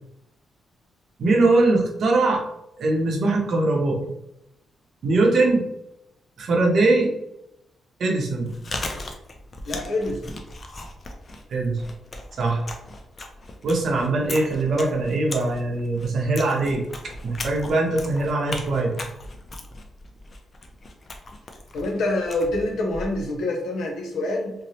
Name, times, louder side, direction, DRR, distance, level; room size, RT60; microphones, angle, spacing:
voice 1, 1.2-2.4 2.8-4.0 5.0-5.6 6.4-7.1 8.0-8.5 11.5-11.8 12.4-12.7 13.6-16.8 17.2-18.9, right 2 dB, 55° right, 0 dB, 0.7 m, -21 dB
Chewing mastication, 8.3-23.4, left 2 dB, 35° left, 0.4 m, -38 dB
voice 2, 9.6-10.4 21.7-24.5, left 2 dB, 85° left, 1 dB, 0.7 m, -26 dB
3.0 x 2.0 x 2.7 m, 0.84 s
cardioid pair, 135°, 0 cm